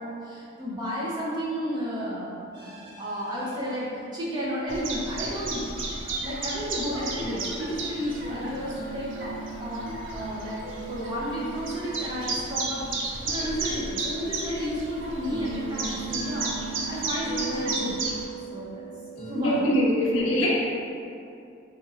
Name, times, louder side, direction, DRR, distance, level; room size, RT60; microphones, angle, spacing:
voice 1, 0.0-5.6 5.9-9.8 10.1-10.6 10.9-18.0 18.5-18.9 19.3-19.7, equal, 20° right, -7 dB, 0.6 m, -32 dB
Chirp tweet, 4.7-18.3, right 3 dB, 75° right, 0.5 m, -34 dB
sound 1, 8.7-19.8, right 4 dB, 30° left, 0.8 m, -39 dB
voice 2, 19.4-20.5, equal, 80° left, -4 dB, 0.6 m, -23 dB
3.6 x 3.0 x 2.4 m, 2.5 s
head